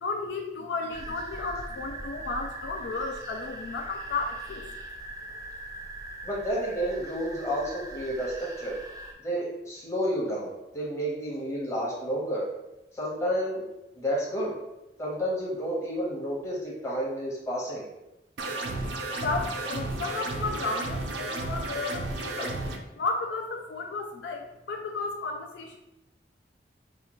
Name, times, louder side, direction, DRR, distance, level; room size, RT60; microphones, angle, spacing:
voice 1, 0.0-4.6 19.1-22.6 23.0-25.8, left 3 dB, 65° left, 3 dB, 0.4 m, -33 dB
sound 1, 0.9-9.1, right 1 dB, 20° right, 0.5 m, -41 dB
voice 2, 6.2-8.7 9.2-12.4 12.9-13.6 14.0-14.5 15.0-17.8, equal, 15° left, -5 dB, 1.0 m, -30 dB
sound 2, 18.4-22.8, right 2 dB, 70° right, 0.5 m, -33 dB
4.9 x 2.3 x 3.0 m, 0.96 s
head